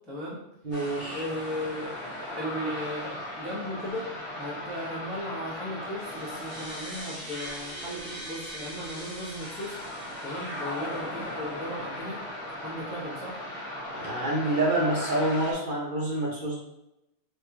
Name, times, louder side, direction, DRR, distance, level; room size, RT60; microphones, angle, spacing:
voice 1, 0.1-0.4 1.1-1.9 2.4-12.2 12.6-13.4, left 1 dB, ahead, -6 dB, 0.5 m, -36 dB
voice 2, 0.6-1.2 13.9-16.6, right 1 dB, 45° right, -5 dB, 0.7 m, -27 dB
sound 1, 0.7-15.5, left 1 dB, 55° left, 1.0 m, -37 dB
2.9 x 2.4 x 3.5 m, 0.86 s
omnidirectional pair, 1.5 m